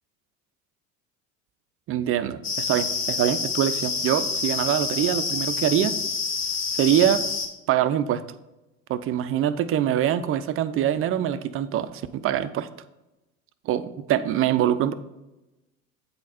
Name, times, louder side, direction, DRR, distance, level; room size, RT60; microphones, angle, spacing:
voice 1, 1.9-5.9 6.8-7.2 7.7-8.2 8.9-12.7 13.7-14.9, right 11 dB, 35° right, 13 dB, 0.4 m, -24 dB
sound 1, 2.4-7.5, left 4 dB, 40° left, 1.6 m, -28 dB
8.3 x 4.0 x 4.1 m, 1.0 s
figure-of-eight pair, 65°, 41 cm